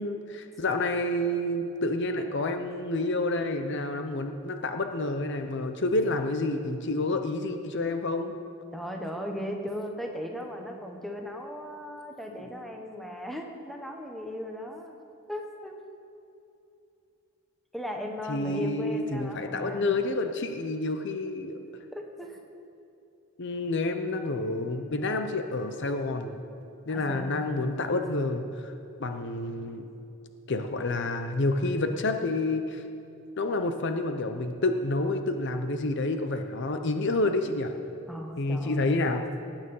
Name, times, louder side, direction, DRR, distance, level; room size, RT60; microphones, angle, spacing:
voice 1, 0.0-8.3 18.3-21.6 23.4-26.4 26.9-28.7 29.0-29.9 30.5-32.8 33.4-37.7 38.4-39.3, left 2 dB, 55° left, 6 dB, 0.8 m, -29 dB
voice 2, 8.7-14.9 15.3-15.8 17.7-19.9 21.9-22.4 26.9-27.7 38.1-39.0, equal, ahead, 2 dB, 1.2 m, -37 dB
19.0 x 9.0 x 5.5 m, 2.7 s
head